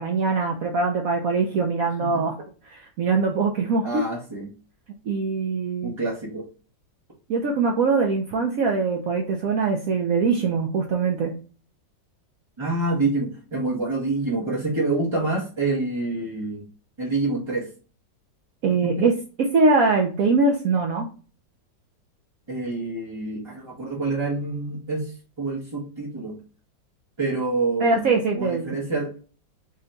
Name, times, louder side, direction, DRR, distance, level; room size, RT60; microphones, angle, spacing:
voice 1, 0.0-2.3 2.7-4.0 5.1-6.0 7.3-11.3 18.6-19.1 19.4-21.1 27.8-28.7, right 4 dB, 70° right, 1 dB, 0.8 m, -22 dB
voice 2, 3.8-4.5 5.8-6.5 12.6-16.6 17.0-17.7 18.8-19.0 22.5-26.4 27.2-29.1, right 3 dB, 30° right, -5 dB, 0.5 m, -27 dB
3.7 x 2.2 x 3.9 m, 0.38 s
omnidirectional pair, 1.9 m